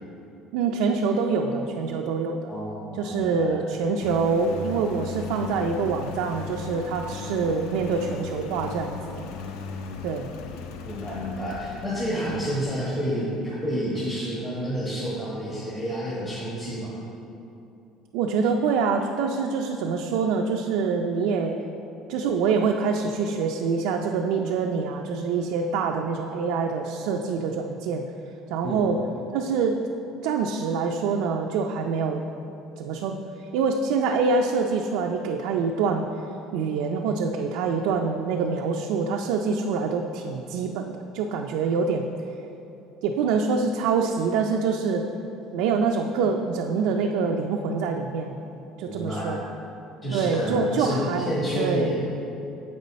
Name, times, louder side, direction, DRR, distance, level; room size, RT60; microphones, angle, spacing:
voice 1, 0.5-2.5 3.0-9.2 10.0-10.3 12.3-12.4 18.1-21.6 22.1-28.0 28.5-29.0 29.3-29.8 30.2-32.2 32.8-33.2 33.5-36.1 36.5-42.1 43.0-45.0 45.5-48.4 48.8-49.4 50.1-51.9, right 5 dB, 80° right, 2 dB, 0.4 m, -25 dB
voice 2, 2.5-3.5 10.8-17.0 28.6-28.9 48.8-49.3 50.0-52.0, equal, 20° left, -8 dB, 1.3 m, -29 dB
Engine, 4.0-13.4, left 5 dB, 80° left, 0.5 m, -37 dB
7.9 x 5.4 x 4.1 m, 2.8 s
cardioid pair, 135°, 0 cm